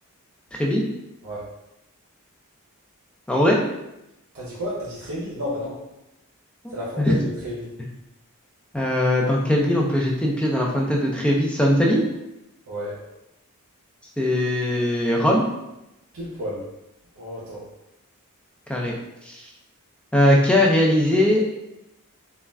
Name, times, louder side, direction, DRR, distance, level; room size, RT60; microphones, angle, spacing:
voice 1, 0.5-0.8 3.3-3.6 6.6-7.2 8.7-12.0 14.2-15.4 18.7-18.9 19.3-19.5 20.1-21.4, left 1 dB, 5° left, -2 dB, 0.3 m, -20 dB
voice 2, 4.3-5.8 6.7-7.7 11.9-12.0 12.7-13.0 16.1-16.6 17.2-17.6, equal, 65° right, -6 dB, 0.6 m, -31 dB
2.3 x 2.1 x 3.4 m, 0.89 s
head